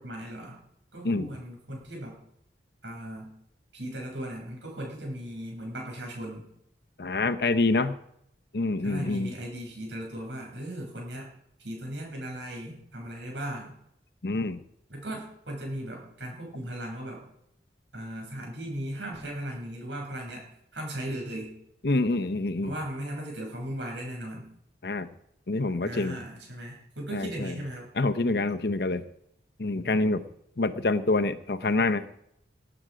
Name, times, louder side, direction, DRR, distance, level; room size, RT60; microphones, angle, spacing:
voice 1, 0.0-0.6 0.9-2.2 2.8-3.3 3.7-6.5 8.8-11.3 11.6-13.8 14.9-17.2 17.9-20.5 20.7-21.5 22.6-24.5 25.8-27.9 29.7-30.0, right 1 dB, 85° right, -1 dB, 7.0 m, -37 dB
voice 2, 7.0-7.9 8.5-9.3 14.2-14.6 21.8-22.7 24.8-25.1 25.5-26.1 27.1-27.5 28.0-29.0 29.6-30.2 30.6-32.0, left 2 dB, 60° left, 12 dB, 0.8 m, -26 dB
19.0 x 8.9 x 5.1 m, 0.74 s
head